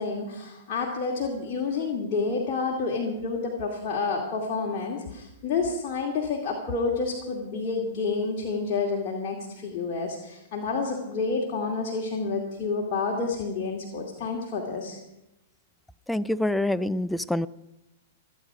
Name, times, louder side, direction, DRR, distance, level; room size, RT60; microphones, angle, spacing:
voice 1, 0.0-15.0, left 4 dB, 40° left, -2 dB, 2.6 m, -29 dB
voice 2, 16.1-17.5, left 1 dB, 5° left, 17 dB, 0.5 m, -26 dB
26.0 x 9.0 x 5.1 m, 0.90 s
figure-of-eight pair, 105°, 0 cm